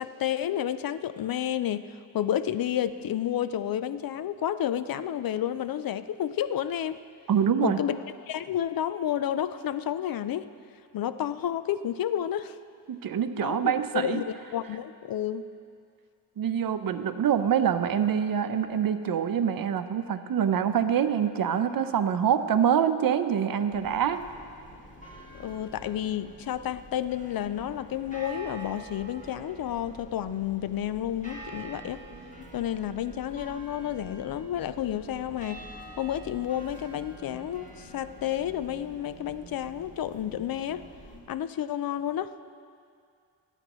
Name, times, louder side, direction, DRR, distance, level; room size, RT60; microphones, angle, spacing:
voice 1, 0.0-7.0 7.6-10.5 10.9-12.6 13.4-15.4 25.3-32.0 32.5-35.7 36.0-40.9 41.3-42.3, left 10 dB, 55° left, 13 dB, 0.5 m, -31 dB
voice 2, 7.3-7.8 12.9-14.2 16.4-24.2, right 8 dB, 55° right, 9 dB, 0.8 m, -25 dB
sound 1, 23.7-41.2, right 1 dB, 20° left, 2.7 m, -46 dB
22.5 x 9.1 x 3.1 m, 2.3 s
cardioid pair, 85°, 41 cm